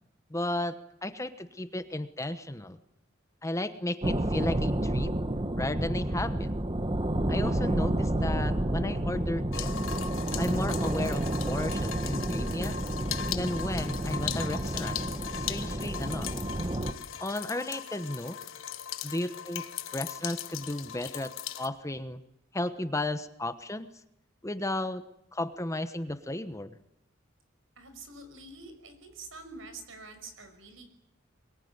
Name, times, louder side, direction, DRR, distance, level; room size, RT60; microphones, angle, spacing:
voice 1, 0.3-2.8 3.4-5.1 5.6-6.5 7.3-9.9 10.4-12.8 13.3-15.1 15.3-16.3 17.2-18.4 19.0-19.6 19.9-22.2 22.5-23.9 24.4-25.0 25.3-26.8, left 1 dB, 15° left, 11 dB, 1.1 m, -34 dB
sound 1, 4.0-16.9, right 1 dB, 25° right, 1.2 m, -30 dB
sound 2, 9.5-21.7, left 9 dB, 90° left, 1.4 m, -38 dB
voice 2, 27.8-30.9, right 3 dB, 75° right, 8 dB, 5.8 m, -46 dB
23.0 x 22.5 x 9.6 m, 0.79 s
head